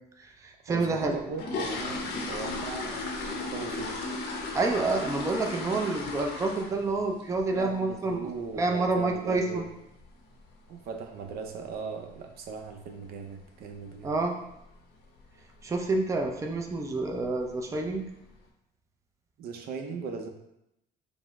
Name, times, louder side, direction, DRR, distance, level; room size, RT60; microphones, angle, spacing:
voice 1, 0.2-1.2 4.5-8.3 8.5-9.7 14.0-14.3 15.6-18.1, right 3 dB, 20° right, 2 dB, 0.4 m, -28 dB
voice 2, 0.7-3.1 3.5-4.0 7.5-9.7 10.7-14.2 19.4-20.3, right 5 dB, 65° right, 4 dB, 0.6 m, -38 dB
sound 1, 1.0-6.9 7.2-7.5 7.8-7.9 8.3-8.4 8.8-9.0 9.3-9.4 10.0-10.1 10.3-10.5 11.0-11.3 11.6-11.7 12.1-12.3 12.6-12.7 13.1-13.2 13.9-14.2 14.5-14.8 15.2-15.3 15.7-15.8 16.6-16.7 17.1-17.6 18.1-18.2, left 3 dB, 85° left, 0.7 m, -35 dB
5.3 x 2.0 x 3.5 m, 0.84 s
cardioid pair, 110°, 17 cm